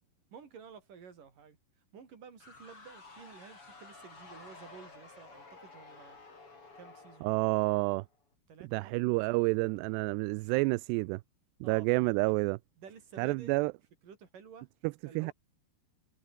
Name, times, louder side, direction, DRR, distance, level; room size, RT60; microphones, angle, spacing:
voice 1, 0.3-1.6 1.9-6.2 6.8-7.4 8.5-9.1 11.6-12.4 12.8-13.5 14.0-14.7 15.1-15.3, right 6 dB, 55° right, 5.3 m, -52 dB
sound 1, 2.4-8.2, left 3 dB, 30° left, 6.2 m, -53 dB
voice 2, 7.2-8.1 8.6-11.2 11.6-12.6 13.2-13.7 14.8-15.3, right 25 dB, 85° right, 2.6 m, -29 dB
omnidirectional pair, 4.8 m